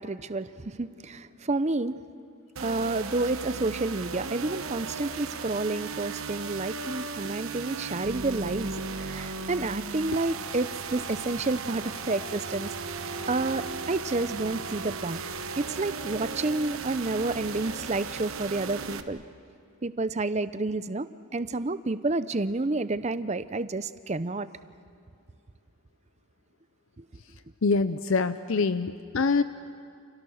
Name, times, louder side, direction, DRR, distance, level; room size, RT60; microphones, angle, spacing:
voice 1, 0.0-2.0 2.6-13.0 13.3-15.2 15.6-19.2 19.8-24.5 27.0-27.1, right 2 dB, 30° right, 13 dB, 0.6 m, -30 dB
sound 1, 2.6-19.0, right 4 dB, 70° right, 1.1 m, -36 dB
voice 2, 27.6-29.4, left 4 dB, 60° left, 12 dB, 0.6 m, -25 dB
29.5 x 29.0 x 6.4 m, 2.4 s
head